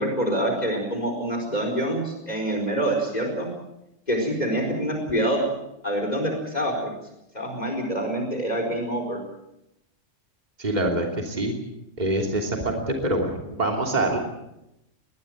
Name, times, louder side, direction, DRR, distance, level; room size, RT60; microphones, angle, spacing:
voice 1, 0.0-3.5 4.1-5.4 5.8-6.9 7.3-9.2, right 1 dB, 35° left, 3 dB, 4.6 m, -26 dB
voice 2, 10.6-11.5 12.0-14.2, right 1 dB, 35° right, 1 dB, 3.2 m, -25 dB
21.0 x 20.0 x 7.8 m, 0.88 s
omnidirectional pair, 1.3 m